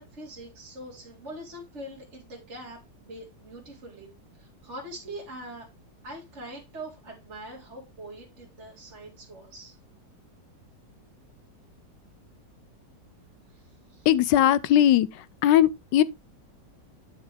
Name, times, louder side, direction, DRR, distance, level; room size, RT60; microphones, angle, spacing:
voice 1, 0.0-4.1 4.4-5.7 6.0-9.8 13.5-13.6 13.9-14.1, right 1 dB, 40° right, 3.2 m, -43 dB
voice 2, 14.1-16.0, left 11 dB, 80° left, 1.3 m, -20 dB
8.7 x 6.6 x 3.4 m
omnidirectional pair, 1.9 m